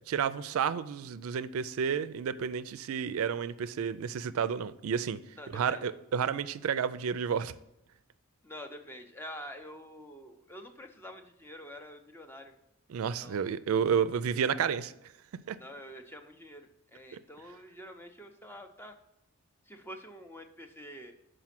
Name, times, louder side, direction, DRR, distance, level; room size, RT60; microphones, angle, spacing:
voice 1, 0.1-5.2 5.5-7.5 12.9-14.9 15.5-15.6, right 7 dB, 80° right, 14 dB, 0.4 m, -31 dB
voice 2, 5.4-5.8 8.4-12.5 13.2-13.5 15.6-19.0 19.7-21.1, equal, 10° left, 5 dB, 0.5 m, -47 dB
6.0 x 5.0 x 5.8 m, 0.86 s
head